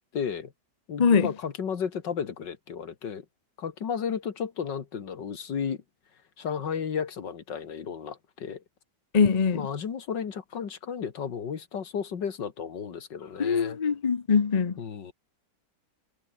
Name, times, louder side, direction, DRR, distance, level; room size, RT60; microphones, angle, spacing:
voice 1, 0.1-0.5 0.9-3.3 3.6-5.8 6.4-8.6 9.5-13.8 14.8-15.1, left 7 dB, 85° left, 2.5 m, -33 dB
voice 2, 1.0-1.3 9.1-9.7 13.4-14.8, left 6 dB, 35° left, 0.7 m, -22 dB
omnidirectional pair, 1.9 m